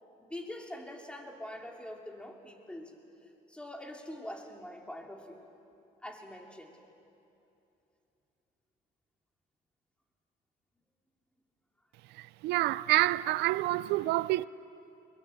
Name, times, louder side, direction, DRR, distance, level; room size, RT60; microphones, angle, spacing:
voice 1, 0.2-3.0 3.5-5.4 6.0-6.7, left 1 dB, 5° left, 2.9 m, -44 dB
voice 2, 12.2-14.5, right 18 dB, 85° right, 0.5 m, -28 dB
23.5 x 22.0 x 7.8 m
cardioid pair, 110°, 17 cm